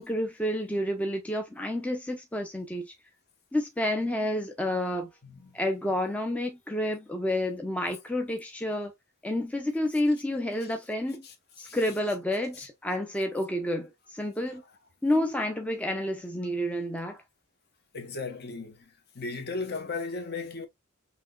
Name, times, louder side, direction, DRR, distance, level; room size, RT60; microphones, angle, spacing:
voice 1, 0.0-2.9 3.5-5.1 5.5-8.9 9.2-11.3 11.6-14.6 15.0-17.2, left 1 dB, 5° left, 0.5 m, -29 dB
voice 2, 5.2-5.6 10.6-10.7 11.2-11.8 17.9-18.9 19.1-20.7, left 4 dB, 50° left, 1.1 m, -36 dB
5.9 x 2.9 x 2.3 m
head